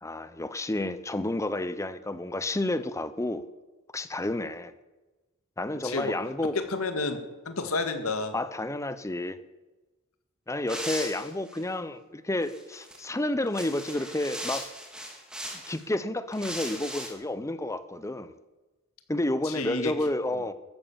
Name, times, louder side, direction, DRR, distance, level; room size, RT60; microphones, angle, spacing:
voice 1, 0.0-3.4 3.9-4.7 5.6-6.6 8.3-9.4 10.5-14.7 15.7-18.3 19.1-20.5, left 1 dB, 15° left, 13 dB, 0.6 m, -30 dB
voice 2, 5.8-6.2 6.5-8.3 19.4-19.9, left 3 dB, 75° left, 7 dB, 1.8 m, -30 dB
sound 1, 10.7-11.6 12.4-13.0 13.4-15.8 16.3-17.1, equal, 5° right, 2.2 m, -38 dB
14.5 x 11.0 x 7.2 m, 1.1 s
head